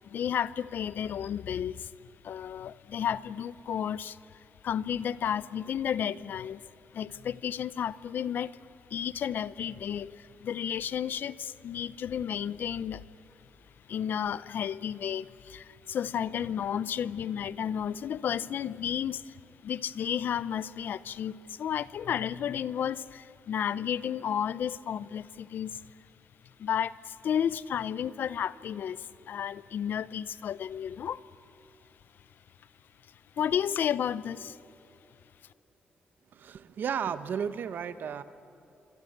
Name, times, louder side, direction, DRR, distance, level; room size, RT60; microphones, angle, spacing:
voice 1, 0.0-1.9 2.2-6.6 6.9-8.6 8.9-13.0 13.9-25.8 26.6-31.2 33.4-34.6, left 9 dB, 70° left, 18 dB, 0.7 m, -32 dB
voice 2, 36.3-38.2, right 7 dB, 65° right, 12 dB, 1.2 m, -33 dB
26.5 x 26.0 x 8.1 m, 3.0 s
cardioid pair, 105°, 3 cm